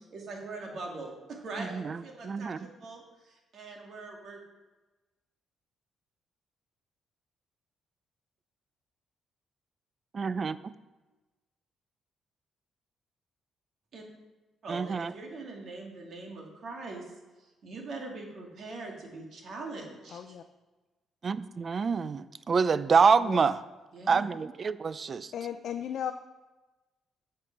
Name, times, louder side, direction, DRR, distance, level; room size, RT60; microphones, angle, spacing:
voice 1, 0.0-4.4 13.9-14.0 14.6-17.1 17.6-20.2 23.9-24.2, right 3 dB, 60° right, 0 dB, 2.4 m, -42 dB
voice 2, 1.6-2.6 10.1-10.7 14.7-15.1 21.2-23.6 24.1-25.3, right 5 dB, 40° right, 16 dB, 0.4 m, -27 dB
voice 3, 20.1-20.4 23.2-23.6 25.3-26.1, left 9 dB, 65° left, 7 dB, 0.5 m, -35 dB
8.2 x 6.8 x 5.9 m, 1.2 s
cardioid pair, 90°, 0 cm